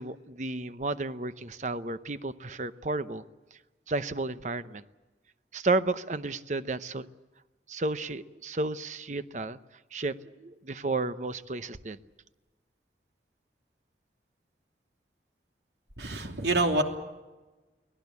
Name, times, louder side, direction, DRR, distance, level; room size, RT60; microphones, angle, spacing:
voice 1, 0.0-3.2 3.9-4.8 5.5-7.1 7.7-9.6 9.9-12.0, right 2 dB, 40° right, 13 dB, 0.8 m, -32 dB
voice 2, 16.0-16.8, right 2 dB, 70° right, 4 dB, 2.8 m, -26 dB
24.0 x 18.5 x 8.4 m, 1.2 s
head